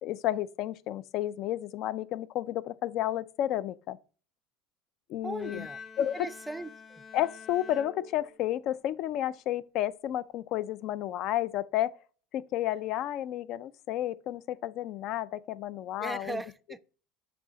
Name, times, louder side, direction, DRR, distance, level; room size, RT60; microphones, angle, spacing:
voice 1, 0.0-4.0 5.1-5.7 6.0-6.3 7.1-11.9 12.3-16.4, left 13 dB, 55° left, 0.4 m, -31 dB
voice 2, 5.2-7.0 16.0-16.8, right 2 dB, 10° right, 0.4 m, -39 dB
Bowed string instrument, 5.4-8.7, left 6 dB, 25° left, 0.9 m, -48 dB
6.9 x 2.7 x 5.0 m
supercardioid pair, 120°, 0 cm